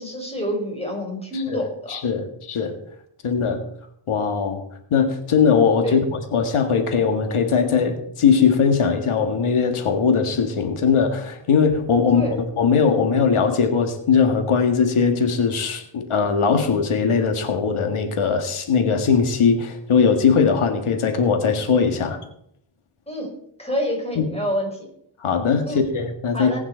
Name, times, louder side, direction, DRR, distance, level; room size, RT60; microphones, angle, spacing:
voice 1, 0.0-2.0 5.8-6.0 12.1-12.4 23.1-23.3 23.6-24.9 25.7-25.8 26.3-26.6, equal, 10° left, 0 dB, 4.7 m, -27 dB
voice 2, 1.3-2.8 3.2-3.6 4.1-4.6 4.9-22.2 24.2-24.3 25.2-26.6, left 6 dB, 90° left, 6 dB, 1.9 m, -20 dB
18.5 x 9.4 x 4.5 m, 0.70 s
wide cardioid pair, 130°, 48 cm